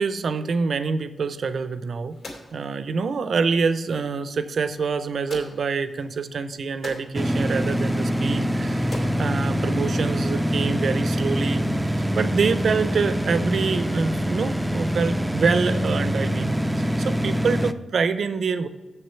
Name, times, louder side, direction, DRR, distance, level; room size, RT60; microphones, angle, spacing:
voice 1, 0.0-2.1 2.5-8.9 9.2-11.6 12.2-18.7, right 5 dB, 65° right, 12 dB, 0.5 m, -26 dB
sound 1, 1.4-10.4, left 2 dB, 65° left, 2.3 m, -46 dB
sound 2, 7.1-17.7, equal, 5° right, 0.3 m, -24 dB
7.3 x 6.6 x 4.4 m, 1.2 s
wide cardioid pair, 145°, 0 cm